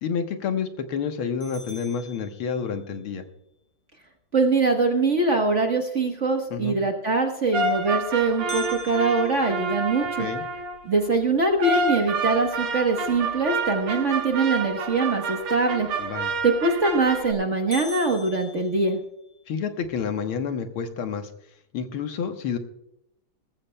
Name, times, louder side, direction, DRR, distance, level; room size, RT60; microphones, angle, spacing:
voice 1, 0.0-3.2 6.5-6.8 10.0-10.4 16.0-16.3 19.5-21.3 21.7-22.6, left 6 dB, 75° left, 6 dB, 1.9 m, -29 dB
sound 1, 1.4-3.0 8.5-10.6 11.2-11.3 11.8-11.9 12.5-12.8 16.4-16.9 17.2-17.3 17.7-19.4, left 1 dB, 45° left, 2.7 m, -43 dB
voice 2, 4.3-10.3 10.8-15.9 16.4-19.0, right 3 dB, 40° right, 3 dB, 1.2 m, -23 dB
sound 2, 7.5-10.8 11.6-17.3, right 3 dB, 85° right, 2.2 m, -29 dB
19.0 x 15.0 x 2.2 m, 0.80 s
omnidirectional pair, 2.4 m